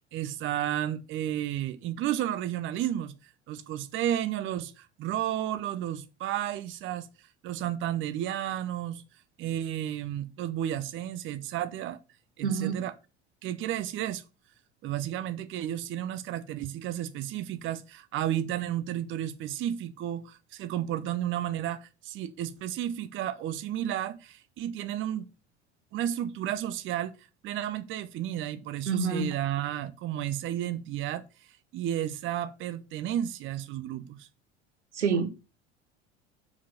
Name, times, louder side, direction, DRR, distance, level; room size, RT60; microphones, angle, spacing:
voice 1, 0.1-3.1 3.5-7.1 7.4-9.0 9.4-12.0 12.4-12.9 13.4-14.2 14.8-25.2 25.9-27.1 27.4-31.3 31.7-34.3, right 11 dB, 35° right, 0.6 m, -32 dB
voice 2, 12.4-12.8 28.9-29.3 34.9-35.3, right 5 dB, 85° right, 1.2 m, -27 dB
5.8 x 4.7 x 5.7 m
figure-of-eight pair, 70°, 34 cm